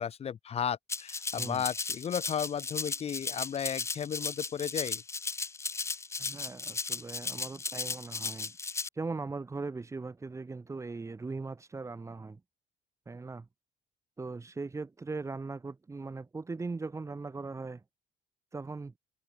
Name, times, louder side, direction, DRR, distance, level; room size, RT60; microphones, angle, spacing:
voice 1, 0.0-5.0, left 8 dB, 35° left, 0.8 m, -34 dB
Rattle (instrument), 0.9-8.9, left 4 dB, 15° left, 0.4 m, -36 dB
voice 2, 6.2-12.4 13.1-13.5 14.2-17.8 18.5-18.9, right 3 dB, 15° right, 1.0 m, -39 dB
cardioid pair, 110°, 17 cm